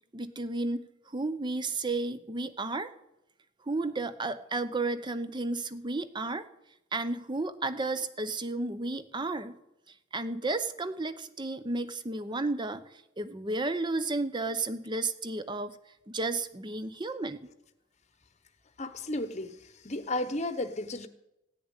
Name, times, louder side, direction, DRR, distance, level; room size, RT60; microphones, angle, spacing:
voice 1, 0.1-2.9 3.7-6.5 6.9-9.5 10.1-12.8 13.2-15.7 16.1-17.4, right 2 dB, 25° right, 12 dB, 0.7 m, -32 dB
voice 2, 18.8-21.1, left 2 dB, 35° left, 11 dB, 1.0 m, -34 dB
15.5 x 6.8 x 9.8 m, 0.89 s
head